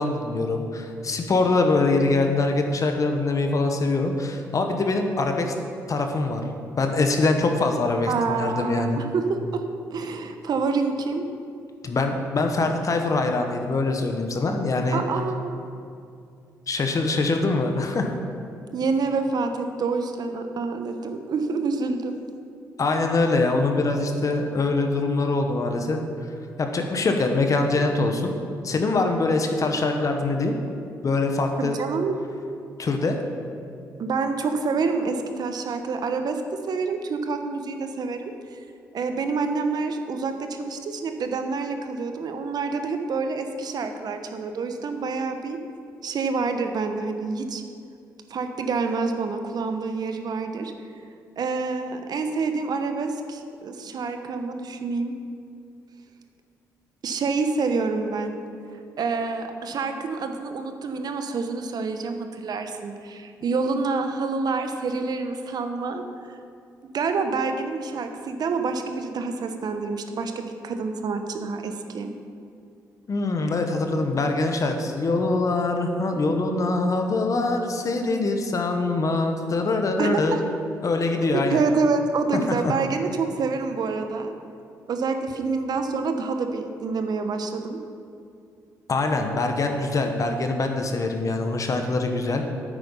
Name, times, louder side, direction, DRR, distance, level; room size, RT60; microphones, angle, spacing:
voice 1, 0.0-5.5 5.9-6.4 6.8-9.0 11.8-15.0 16.7-18.1 22.8-26.0 26.6-28.3 28.6-30.6 31.0-31.8 32.8-33.2 73.1-80.4 80.8-81.6 82.6-82.7 88.9-92.4, left 3 dB, 45° left, 4 dB, 1.2 m, -23 dB
voice 2, 8.1-9.6 9.9-11.2 14.9-15.6 18.7-22.2 31.6-32.2 34.0-38.6 38.9-45.6 46.0-47.6 48.3-50.7 51.4-55.1 57.0-58.4 58.7-66.0 66.9-72.1 80.0-80.4 81.2-84.3 84.9-87.8, right 4 dB, 60° right, 6 dB, 1.0 m, -27 dB
9.1 x 8.4 x 5.6 m, 2.5 s
supercardioid pair, 55°, 8 cm